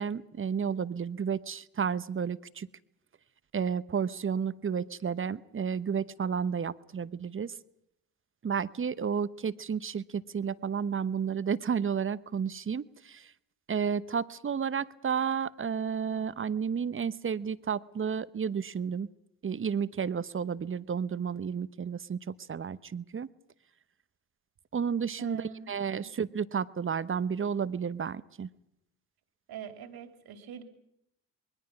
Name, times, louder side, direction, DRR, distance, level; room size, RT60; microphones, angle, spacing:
voice 1, 0.0-2.7 3.5-7.6 8.4-13.3 13.7-19.1 19.4-23.3 24.7-28.5, right 7 dB, 30° right, 16 dB, 0.9 m, -32 dB
voice 2, 25.2-26.1 29.5-30.6, right 8 dB, 60° right, 8 dB, 2.9 m, -44 dB
27.5 x 21.0 x 6.0 m, 0.79 s
hypercardioid pair, 55°, 40 cm